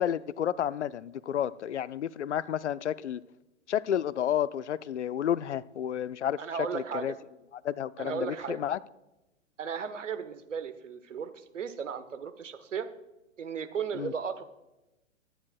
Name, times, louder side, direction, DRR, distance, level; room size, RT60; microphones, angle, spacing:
voice 1, 0.0-3.2 3.7-6.4 6.7-7.1 7.6-8.8 13.9-14.1, left 10 dB, 60° left, 0.5 m, -31 dB
voice 2, 6.4-7.1 8.0-8.6 9.6-12.9 13.4-14.4, right 6 dB, 65° right, 1.1 m, -35 dB
22.0 x 10.0 x 2.3 m
figure-of-eight pair, 115°, 40 cm